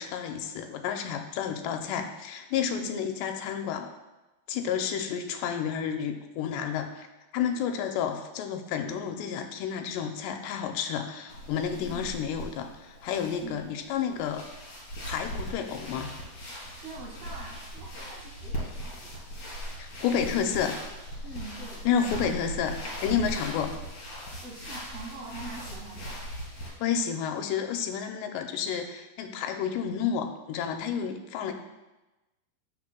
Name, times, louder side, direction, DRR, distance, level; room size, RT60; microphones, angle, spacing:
voice 1, 0.0-3.9 4.5-7.1 7.3-14.5 15.1-16.1 19.8-20.8 21.9-23.7 26.8-31.5, left 7 dB, 85° left, 5 dB, 2.8 m, -30 dB
voice 2, 2.6-2.9 11.8-12.1 13.4-13.6 16.8-19.3 21.2-21.9 23.3-23.5 24.4-26.3 31.4-31.5, right 2 dB, 50° right, -5 dB, 2.6 m, -43 dB
sound 1, 11.3-26.7, equal, 45° left, 4.2 m, -39 dB
17.5 x 6.0 x 2.2 m, 1.1 s
omnidirectional pair, 4.9 m